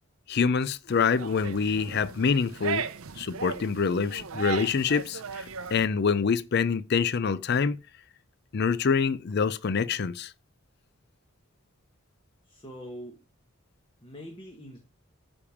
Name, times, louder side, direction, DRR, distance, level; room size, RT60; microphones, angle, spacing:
voice 1, 0.3-2.9 3.2-7.8 8.5-10.3, left 5 dB, 50° left, 0.4 m, -26 dB
sound 1, 0.9-5.9, right 6 dB, 75° right, 0.7 m, -37 dB
voice 2, 12.4-13.2 14.0-14.8, equal, 25° left, 1.2 m, -43 dB
9.7 x 3.5 x 7.0 m
head